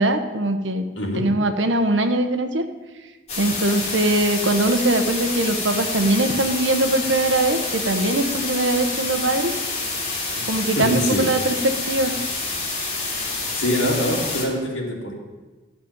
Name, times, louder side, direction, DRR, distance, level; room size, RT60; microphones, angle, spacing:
voice 1, 0.0-0.8 1.1-2.6 3.4-9.5 10.5-12.1, right 1 dB, 80° right, 7 dB, 1.2 m, -21 dB
voice 2, 1.0-1.3 10.7-11.3 13.5-15.2, left 1 dB, 85° left, -1 dB, 3.1 m, -24 dB
sound 1, 3.3-14.5, left 3 dB, 35° left, 3.1 m, -28 dB
13.0 x 7.0 x 9.0 m, 1.2 s
head